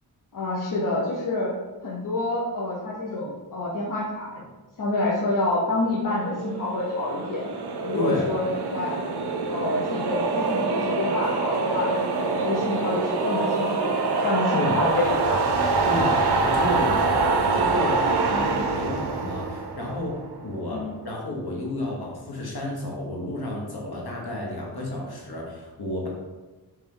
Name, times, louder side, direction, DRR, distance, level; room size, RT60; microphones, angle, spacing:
voice 1, 0.3-1.5 1.8-4.4 4.8-7.5 7.8-8.9 9.5-11.9 12.2-13.9 14.2-15.4 18.3-18.5 20.7-20.9, left 2 dB, 55° left, -5 dB, 0.8 m, -27 dB
sound 1, 6.2-20.5, right 3 dB, 80° right, 0.6 m, -25 dB
voice 2, 7.9-8.3 14.5-14.8 15.8-16.2 16.4-20.2 20.4-26.1, left 1 dB, 70° left, -2 dB, 1.2 m, -31 dB
4.4 x 3.2 x 3.7 m, 1.2 s
wide cardioid pair, 140°, 39 cm